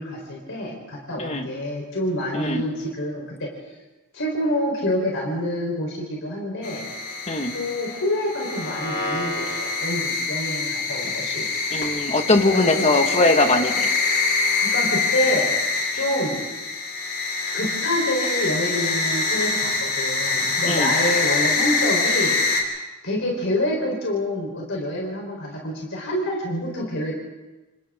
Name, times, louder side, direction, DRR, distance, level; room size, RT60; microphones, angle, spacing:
voice 1, 0.0-3.5 4.1-6.9 7.5-11.5 12.5-12.9 14.6-15.5 15.9-16.4 17.5-22.8 23.0-27.2, left 1 dB, 60° left, -1 dB, 4.3 m, -27 dB
sound 1, 6.6-22.6, left 4 dB, 45° left, 3.5 m, -25 dB
voice 2, 11.7-13.9 20.7-20.9, left 2 dB, 30° left, 5 dB, 1.8 m, -21 dB
28.5 x 27.5 x 3.8 m, 1.1 s
head